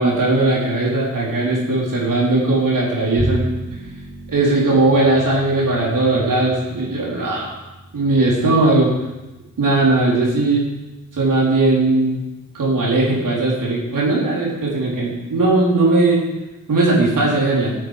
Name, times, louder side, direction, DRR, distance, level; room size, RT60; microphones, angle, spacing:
voice 1, 0.0-3.5 4.3-7.5 7.9-8.9 9.6-10.6 11.1-12.2 12.5-16.2 16.7-17.7, right 2 dB, 70° right, -4 dB, 4.3 m, -18 dB
Bowed string instrument, 3.2-9.6, right 1 dB, 35° right, 2.8 m, -32 dB
16.0 x 9.5 x 5.2 m, 1.1 s
wide cardioid pair, 170°, 33 cm